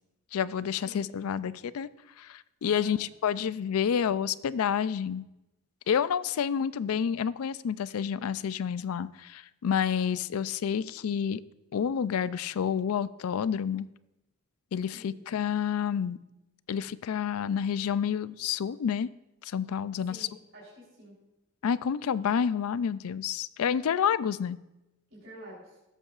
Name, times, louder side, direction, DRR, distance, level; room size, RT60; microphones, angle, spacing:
voice 1, 0.3-1.9 2.2-5.2 5.9-11.4 11.7-13.9 14.7-16.2 16.7-19.1 19.4-20.2 21.6-24.6, left 7 dB, 85° left, 17 dB, 0.4 m, -29 dB
voice 2, 14.9-15.2 20.1-21.1 25.1-25.8, equal, 60° right, -7 dB, 3.6 m, -48 dB
18.0 x 8.2 x 2.4 m, 0.95 s
head